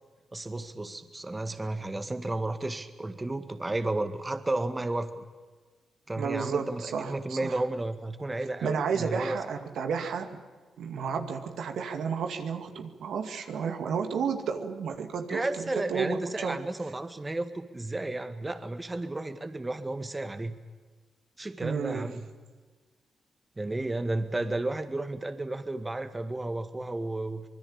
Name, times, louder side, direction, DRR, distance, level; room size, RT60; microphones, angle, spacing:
voice 1, 0.3-5.2 6.1-9.4 15.3-20.6 21.4-22.3 23.6-27.5, right 2 dB, 25° right, 9 dB, 1.9 m, -33 dB
voice 2, 6.2-7.6 8.6-10.3 10.8-16.6 21.6-22.1, right 6 dB, 75° right, 5 dB, 2.3 m, -32 dB
25.0 x 21.0 x 8.8 m, 1.3 s
supercardioid pair, 45°, 0 cm